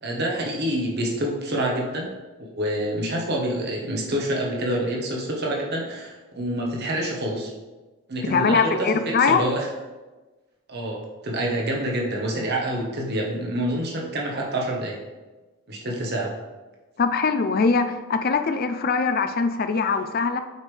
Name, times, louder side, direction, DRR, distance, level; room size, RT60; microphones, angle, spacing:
voice 1, 0.0-2.1 2.6-7.5 8.1-9.7 10.7-15.0 15.7-16.3, right 1 dB, 45° right, -1 dB, 1.2 m, -27 dB
voice 2, 8.3-9.4 17.0-20.4, left 5 dB, 40° left, 9 dB, 0.4 m, -22 dB
8.2 x 5.2 x 3.3 m, 1.2 s
head